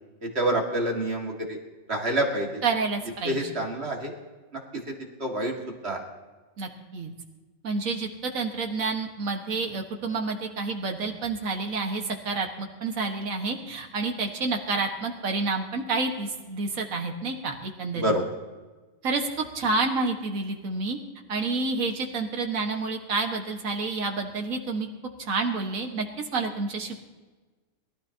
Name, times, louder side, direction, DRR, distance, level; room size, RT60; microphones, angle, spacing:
voice 1, 0.2-1.6 1.9-2.6 3.2-4.1 5.2-5.5 5.8-6.0 17.9-18.2, right 1 dB, 45° right, 1 dB, 2.3 m, -27 dB
voice 2, 2.6-3.5 6.6-7.1 7.6-18.1 19.0-21.0 21.3-24.9 25.2-26.1 26.3-27.0, right 3 dB, 70° right, 2 dB, 1.9 m, -29 dB
22.0 x 13.0 x 2.9 m, 1.3 s
omnidirectional pair, 1.5 m